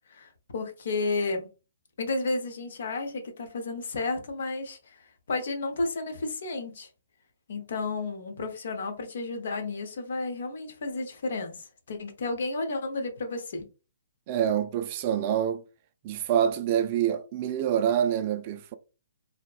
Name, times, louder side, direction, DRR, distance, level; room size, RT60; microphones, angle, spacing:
voice 1, 0.1-1.5 2.0-5.0 5.3-6.9 7.5-13.7, left 3 dB, 65° left, 0.7 m, -32 dB
voice 2, 14.3-15.6 16.0-18.7, right 9 dB, 35° right, 0.3 m, -26 dB
2.7 x 2.1 x 2.3 m
hypercardioid pair, 145°, 0 cm